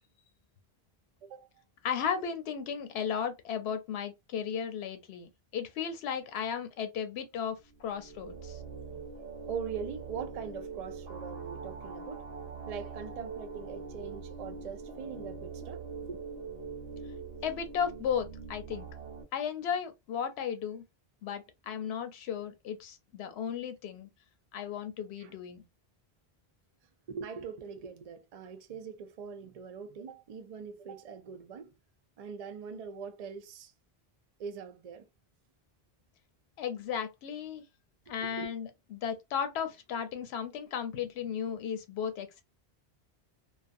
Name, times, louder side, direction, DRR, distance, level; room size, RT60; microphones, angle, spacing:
voice 1, 1.8-8.6 17.4-18.9 19.3-20.8 21.2-24.1 24.5-25.6 36.6-37.6 38.1-42.4, left 7 dB, 90° left, 0.8 m, -35 dB
sound 1, 7.7-19.2, right 5 dB, 90° right, 1.0 m, -43 dB
voice 2, 9.5-12.3 12.6-16.2 25.2-25.3 27.1-31.7 32.2-33.7 34.4-35.0 38.2-38.5, right 6 dB, 50° right, 0.5 m, -42 dB
2.4 x 2.3 x 2.5 m
omnidirectional pair, 1.0 m